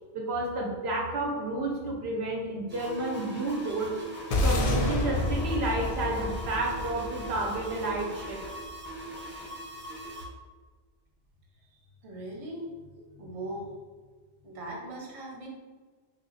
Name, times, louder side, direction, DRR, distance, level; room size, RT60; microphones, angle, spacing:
voice 1, 0.1-3.9 4.4-8.4, right 2 dB, 70° right, -1 dB, 0.8 m, -31 dB
sound 1, 2.7-10.3, right 1 dB, 20° right, 0.3 m, -41 dB
sound 2, 4.3-8.8, left 1 dB, 60° left, 0.6 m, -29 dB
voice 2, 12.0-12.7 13.1-13.8 14.4-15.5, right 1 dB, 35° right, -2 dB, 0.7 m, -39 dB
3.2 x 2.2 x 3.9 m, 1.4 s
omnidirectional pair, 1.2 m